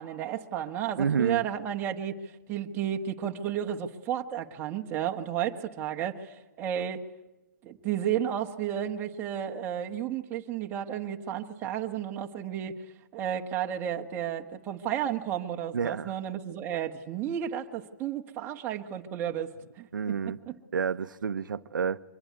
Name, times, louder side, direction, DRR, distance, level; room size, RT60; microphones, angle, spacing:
voice 1, 0.0-2.2 2.5-7.0 7.6-12.8 13.1-19.9 20.5-20.6, right 10 dB, 20° right, 1.3 m, -32 dB
voice 2, 1.0-1.5 15.7-16.1 19.9-20.4 20.7-22.0, right 6 dB, 90° right, 0.9 m, -29 dB
24.5 x 21.5 x 9.5 m
hypercardioid pair, 160°, 10 cm